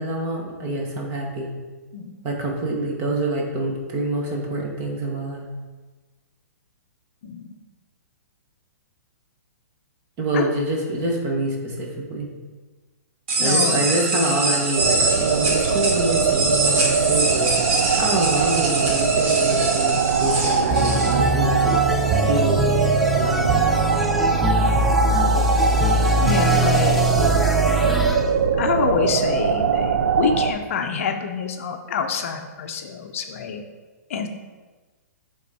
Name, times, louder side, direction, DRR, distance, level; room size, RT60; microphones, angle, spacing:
voice 1, 0.0-1.5 2.2-5.5 10.2-12.3 13.4-21.8 22.2-22.7 23.1-23.5, right 1 dB, 25° right, 0 dB, 1.2 m, -26 dB
voice 2, 7.2-7.5 10.3-10.4 13.4-13.8 26.2-27.1 28.5-33.6 34.1-34.3, left 6 dB, 50° left, 5 dB, 0.6 m, -26 dB
sound 1, 13.3-21.1, right 2 dB, 45° right, 1.4 m, -24 dB
sound 2, 14.8-30.5, right 6 dB, 75° right, 0.6 m, -22 dB
sound 3, 20.7-28.2, equal, ahead, 0.3 m, -22 dB
8.3 x 3.7 x 4.2 m, 1.3 s
hypercardioid pair, 160°, 9 cm